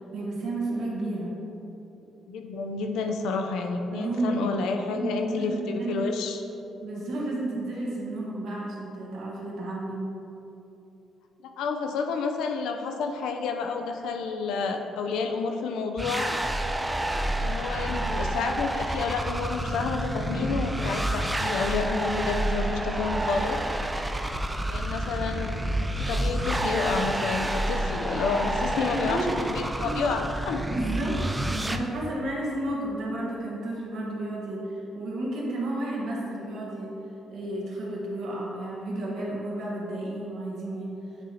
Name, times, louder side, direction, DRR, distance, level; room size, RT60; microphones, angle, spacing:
voice 1, 0.1-1.3 3.9-4.5 4.9-6.1 6.8-10.1 28.9-30.0 30.7-31.2 31.5-36.9 37.3-41.0, right 2 dB, 75° right, -4 dB, 1.4 m, -32 dB
voice 2, 2.3-6.4 11.6-16.3 17.4-23.6 24.7-25.6 26.0-30.6, left 4 dB, 85° left, 4 dB, 0.5 m, -30 dB
sound 1, 16.0-31.8, right 1 dB, 15° right, 0.4 m, -29 dB
8.1 x 3.1 x 4.1 m, 3.0 s
cardioid pair, 90°, 0 cm